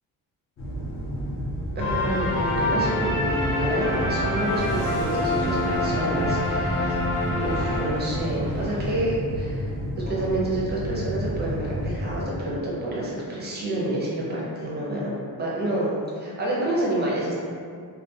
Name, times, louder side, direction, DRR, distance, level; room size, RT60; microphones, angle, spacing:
sound 1, 0.6-12.3, equal, 35° left, 0.4 m, -31 dB
sound 2, 1.8-8.4, left 1 dB, 85° left, 0.7 m, -26 dB
voice 1, 1.8-6.9 7.4-9.7 10.1-15.1 15.4-15.9 16.2-17.3, right 1 dB, 25° right, -6 dB, 0.5 m, -28 dB
sound 3, 4.5-8.9, equal, 85° right, 0.7 m, -40 dB
2.3 x 2.2 x 2.6 m, 2.2 s
wide cardioid pair, 175°, 38 cm